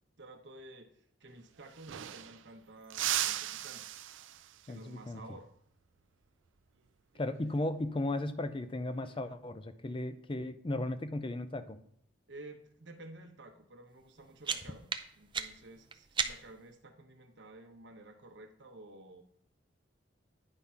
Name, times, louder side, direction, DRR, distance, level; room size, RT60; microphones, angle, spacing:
voice 1, 0.2-3.9 4.6-5.5 12.3-14.9 15.2-19.2, right 2 dB, 70° right, 5 dB, 1.0 m, -52 dB
sound 1, 1.3-1.4 1.6-2.5 2.9-4.7 7.2-7.5 8.9-9.3, right 12 dB, 85° right, 0.4 m, -37 dB
voice 2, 4.7-5.2 7.2-11.8, left 2 dB, 25° left, 11 dB, 0.5 m, -35 dB
sound 2, 14.0-16.7, right 6 dB, 25° right, 0.5 m, -38 dB
9.8 x 3.6 x 5.6 m, 0.71 s
head